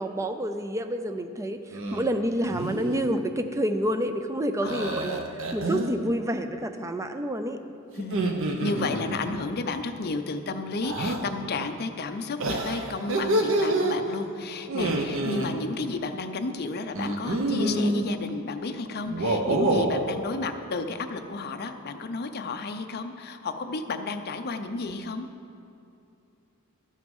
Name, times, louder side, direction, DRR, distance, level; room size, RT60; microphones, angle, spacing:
voice 1, 0.0-5.2 5.5-7.6, equal, 15° right, 8 dB, 0.5 m, -28 dB
sound 1, 1.7-2.1 2.4-2.9 4.7-5.9 8.0-9.4 10.8-11.2 12.4-13.9 14.7-15.5 16.9-18.0 19.0-20.0, right 1 dB, 65° right, 0.9 m, -27 dB
voice 2, 4.6-5.3 7.9-25.3, left 3 dB, 45° left, 8 dB, 0.6 m, -32 dB
13.0 x 6.3 x 5.4 m, 2.6 s
head